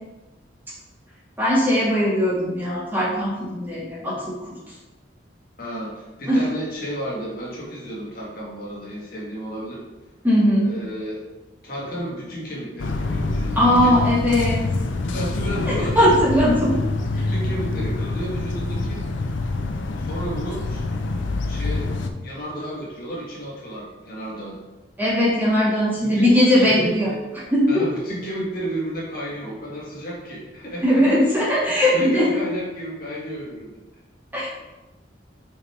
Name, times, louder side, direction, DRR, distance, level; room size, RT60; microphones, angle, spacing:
voice 1, 1.4-4.4 6.3-6.4 10.2-10.7 13.6-14.6 15.7-16.8 25.0-27.1 27.5-27.9 30.8-32.3 34.3-34.5, equal, 10° right, -8 dB, 2.1 m, -19 dB
voice 2, 5.6-9.8 10.7-11.2 11.6-14.0 15.1-16.1 17.1-19.0 20.0-20.8 21.4-24.6 26.0-26.3 26.6-27.2 27.7-31.0 31.7-33.7, right 1 dB, 55° left, -5 dB, 1.8 m, -32 dB
sound 1, 12.8-22.1, left 2 dB, 90° left, 0.6 m, -26 dB
6.1 x 4.8 x 3.4 m, 1.1 s
head